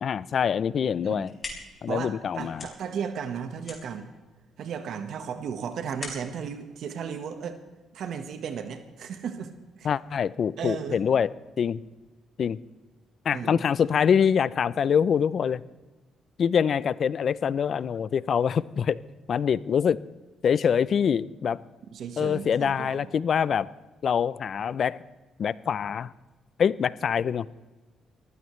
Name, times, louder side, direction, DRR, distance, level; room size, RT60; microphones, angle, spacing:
voice 1, 0.0-1.3 1.8-2.7 9.8-11.3 11.6-11.8 12.4-12.6 13.2-15.6 16.4-19.0 19.3-20.0 20.4-21.6 22.2-23.7 24.0-25.0 25.4-26.1 26.6-27.5, left 7 dB, 55° left, 19 dB, 0.5 m, -24 dB
sound 1, 1.0-7.8, left 3 dB, 40° left, 4.5 m, -44 dB
voice 2, 1.9-4.1 4.6-7.6 7.9-9.5 9.8-9.9 10.6-11.0 13.3-13.6 21.9-23.1, right 7 dB, 70° right, 8 dB, 1.3 m, -35 dB
22.0 x 15.5 x 3.2 m, 1.2 s
cardioid pair, 90°, 0 cm